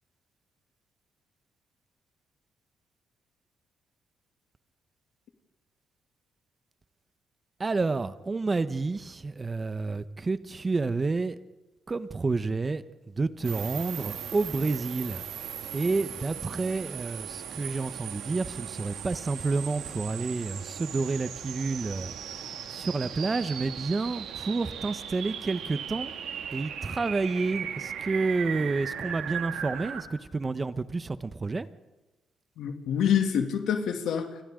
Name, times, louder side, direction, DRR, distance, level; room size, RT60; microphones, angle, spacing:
voice 1, 7.6-11.4 11.9-26.1 26.5-31.7, right 3 dB, 30° right, 1.1 m, -30 dB
sound 1, 13.4-30.0, right 8 dB, 80° right, 2.5 m, -38 dB
voice 2, 32.6-34.4, left 8 dB, 80° left, 2.6 m, -26 dB
29.5 x 25.5 x 3.9 m
cardioid pair, 90°, 0 cm